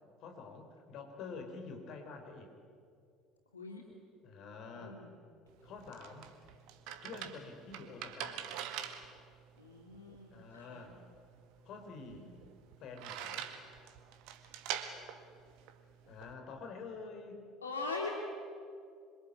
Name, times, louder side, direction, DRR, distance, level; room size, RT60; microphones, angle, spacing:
voice 1, 0.2-2.5 4.2-5.0 5.6-6.3 7.0-8.5 10.3-11.0 11.6-12.3 12.8-13.5 16.1-17.4, left 4 dB, 50° left, 4 dB, 4.7 m, -47 dB
voice 2, 4.8-5.1 9.6-10.9 12.0-12.3 17.6-18.1, left 3 dB, 85° left, 1 dB, 2.4 m, -42 dB
sound 1, 5.5-16.3, right 9 dB, 60° right, 2.1 m, -45 dB
26.5 x 24.0 x 8.7 m, 2.3 s
figure-of-eight pair, 60°, 0 cm